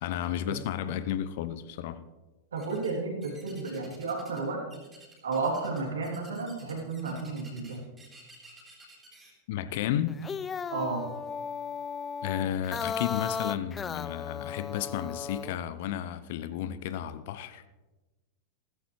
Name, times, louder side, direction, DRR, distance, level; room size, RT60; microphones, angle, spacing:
voice 1, 0.0-2.0 9.5-10.1 12.2-17.6, left 11 dB, 50° left, 0.7 m, -32 dB
voice 2, 2.5-4.6 5.2-7.8 10.7-11.1, right 3 dB, 65° right, 3.0 m, -32 dB
sound 1, 2.6-2.9 3.2-4.4 4.7-9.3, right 2 dB, 15° right, 4.1 m, -53 dB
sound 2, 10.1-15.6, left 6 dB, 20° left, 0.4 m, -36 dB
15.5 x 14.5 x 3.2 m
figure-of-eight pair, 90°, 0 cm